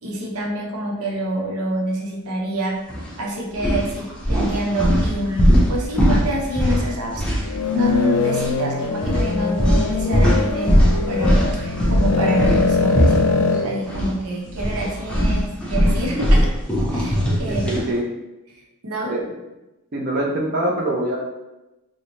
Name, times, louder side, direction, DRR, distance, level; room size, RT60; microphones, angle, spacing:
voice 1, 0.0-2.8 3.2-16.5 16.9-17.8 18.5-19.1, equal, 85° right, -1 dB, 0.7 m, -27 dB
sound 1, 2.9-3.1 3.5-8.0 8.3-8.5 9.0-14.1 14.4-17.9, equal, 5° left, 0.5 m, -20 dB
sound 2, 7.4-13.6, left 4 dB, 85° left, 0.4 m, -22 dB
voice 2, 17.2-18.1 19.0-19.3 19.9-21.2, right 1 dB, 45° right, -3 dB, 0.5 m, -24 dB
3.9 x 2.0 x 3.0 m, 0.97 s
head